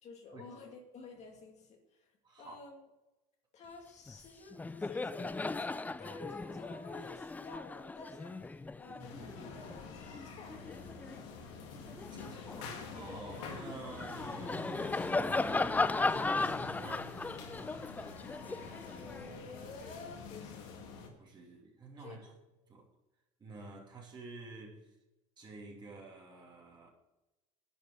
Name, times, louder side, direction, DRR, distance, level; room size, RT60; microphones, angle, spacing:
voice 1, 0.0-2.1 2.4-2.9 3.5-10.8 18.7-20.9 22.0-22.4, left 3 dB, 45° left, 2 dB, 2.3 m, -51 dB
voice 2, 2.2-2.6 12.1-17.1 21.2-22.3 22.7-22.8 23.4-24.8 25.4-26.9, right 3 dB, 30° right, -1 dB, 2.8 m, -49 dB
Laughter, 4.1-4.3 4.5-11.2 11.7-19.9, left 3 dB, 10° left, 0.4 m, -37 dB
sound 1, 9.0-21.1, left 5 dB, 80° left, 2.0 m, -47 dB
11.0 x 5.2 x 8.4 m, 1.0 s
supercardioid pair, 105°, 16 cm